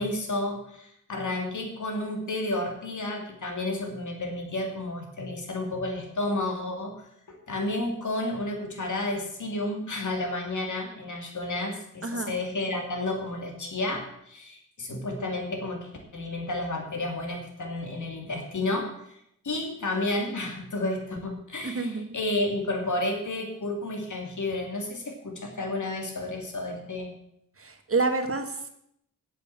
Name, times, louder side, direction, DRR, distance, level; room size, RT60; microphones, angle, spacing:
voice 1, 0.0-6.9 7.3-19.2 19.4-27.1, left 2 dB, 65° left, 2 dB, 2.7 m, -31 dB
voice 2, 12.0-12.4 21.6-22.2 27.6-28.7, right 3 dB, 45° right, 6 dB, 1.6 m, -28 dB
8.9 x 7.7 x 7.5 m, 0.76 s
wide cardioid pair, 95°, 32 cm